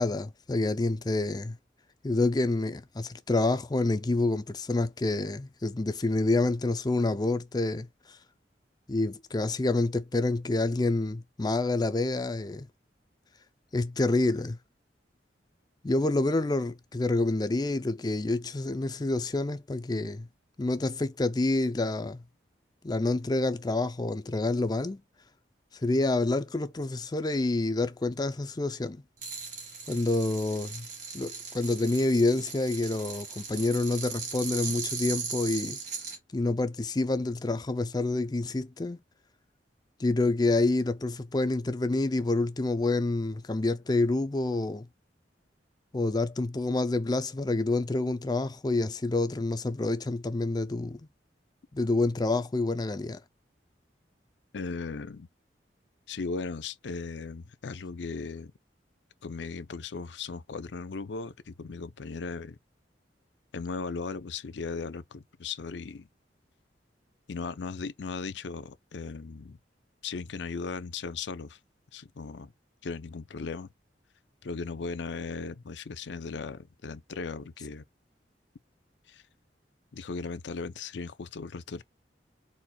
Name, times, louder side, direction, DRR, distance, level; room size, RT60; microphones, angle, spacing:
voice 1, 0.0-1.6 2.0-7.9 8.9-12.7 13.7-14.6 15.8-20.3 20.6-22.2 22.8-25.0 25.8-29.0 29.9-30.9 31.1-35.8 36.3-39.0 40.0-44.9 45.9-51.1 51.7-53.2, left 2 dB, 20° left, 0.4 m, -28 dB
sound 1, 29.2-36.2, right 5 dB, 45° right, 1.9 m, -38 dB
voice 2, 54.5-55.3 56.1-58.5 59.2-62.6 63.5-66.1 67.3-69.6 70.0-71.6 71.9-72.5 72.8-73.7 74.4-77.8 79.1-79.2 79.9-81.8, left 4 dB, 80° left, 0.5 m, -37 dB
4.3 x 4.2 x 2.3 m
head